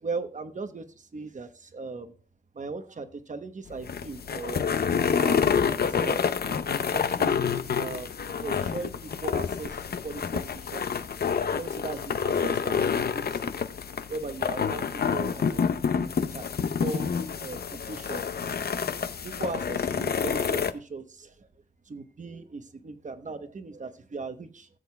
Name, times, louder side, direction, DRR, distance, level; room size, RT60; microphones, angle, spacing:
voice 1, 0.0-2.1 2.5-4.7 5.1-7.3 7.8-10.8 11.5-13.5 14.1-15.7 16.3-18.3 19.2-21.5 21.9-24.7, right 4 dB, 45° right, 9 dB, 1.0 m, -38 dB
sound 1, 3.7-20.7, left 6 dB, 65° left, 0.6 m, -28 dB
17.5 x 7.8 x 2.2 m, 0.35 s
wide cardioid pair, 120°, 17 cm